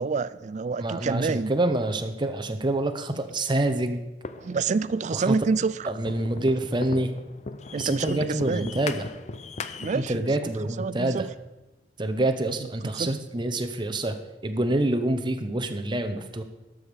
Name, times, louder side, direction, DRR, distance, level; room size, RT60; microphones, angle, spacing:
voice 1, 0.0-1.5 4.4-5.8 7.7-8.7 9.8-10.2 10.8-11.3 13.0-13.1, right 4 dB, 40° right, 17 dB, 0.4 m, -27 dB
voice 2, 0.8-4.0 5.1-5.4 5.8-7.1 7.7-9.1 9.9-11.3 12.0-14.2 14.4-16.4, right 1 dB, 25° right, 6 dB, 0.9 m, -26 dB
sound 1, 4.2-10.2, left 4 dB, 40° left, 0.5 m, -39 dB
12.5 x 6.4 x 5.2 m, 1.0 s
head